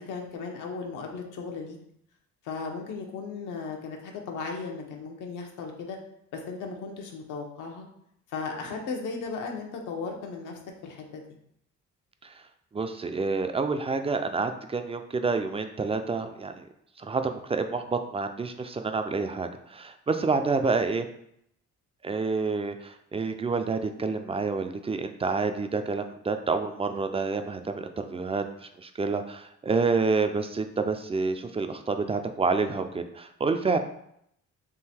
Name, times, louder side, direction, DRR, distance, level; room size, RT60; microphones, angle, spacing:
voice 1, 0.0-1.8 2.4-6.0 6.3-7.9 8.3-11.2, left 4 dB, 85° left, 2 dB, 0.9 m, -36 dB
voice 2, 12.7-16.6 17.0-21.1 22.0-33.8, right 4 dB, 20° right, 7 dB, 0.4 m, -28 dB
3.8 x 2.7 x 4.3 m, 0.73 s
cardioid pair, 90°, 30 cm